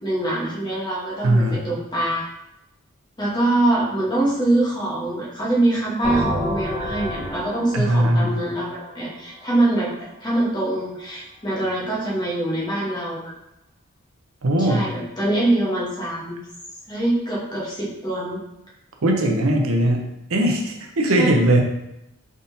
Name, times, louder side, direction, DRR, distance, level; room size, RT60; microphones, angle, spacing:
voice 1, 0.0-2.3 3.2-9.9 10.2-13.3 14.6-16.4 16.9-18.4 21.2-21.3, right 1 dB, 20° left, -6 dB, 1.1 m, -24 dB
voice 2, 1.2-1.6 7.7-8.4 14.4-14.9 19.0-21.6, right 1 dB, 85° right, 2 dB, 0.7 m, -19 dB
sound 1, 6.0-9.7, equal, 5° left, 1.3 m, -30 dB
3.9 x 3.6 x 2.7 m, 0.86 s
head